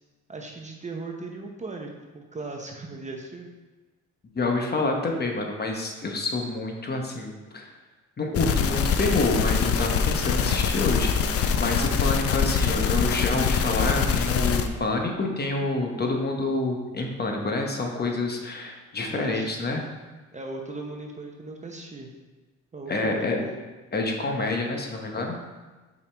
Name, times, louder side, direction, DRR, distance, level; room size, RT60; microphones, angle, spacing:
voice 1, 0.3-3.5 19.0-19.7 20.3-22.1 22.7-23.6, right 3 dB, 25° right, 1 dB, 0.8 m, -38 dB
voice 2, 4.3-7.7 8.2-11.1 11.6-19.9 22.9-23.4 23.9-25.4, left 2 dB, 35° left, 2 dB, 1.0 m, -27 dB
sound 1, 8.3-14.7, left 6 dB, 50° left, 0.5 m, -24 dB
5.5 x 5.2 x 3.4 m, 1.3 s
cardioid pair, 90°, 30 cm